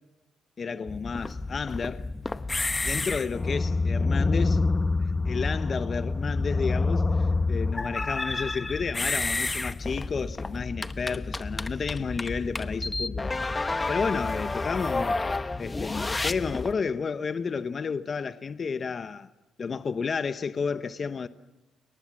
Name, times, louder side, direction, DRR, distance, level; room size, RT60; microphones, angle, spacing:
voice 1, 0.6-2.1 2.8-4.6 5.0-13.3 13.9-15.2 15.6-19.3 19.6-21.3, left 5 dB, 45° left, 1.0 m, -31 dB
sound 1, 0.9-16.7, left 3 dB, 20° left, 0.9 m, -28 dB
29.5 x 23.0 x 7.3 m
cardioid pair, 90°, 0 cm